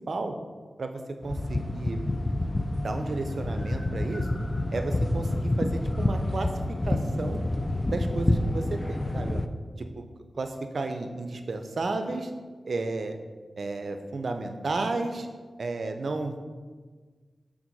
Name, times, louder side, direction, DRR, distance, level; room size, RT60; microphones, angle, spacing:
voice 1, 0.8-2.0 2.8-4.3 4.7-6.5 6.9-7.4 7.9-9.4 9.8-10.1 10.4-12.3 12.6-13.2 13.6-15.3 15.6-16.4, right 3 dB, 70° right, 6 dB, 0.6 m, -32 dB
sound 1, 1.2-9.5, left 1 dB, 30° left, 0.4 m, -28 dB
6.1 x 3.9 x 5.3 m, 1.4 s
cardioid pair, 45°, 0 cm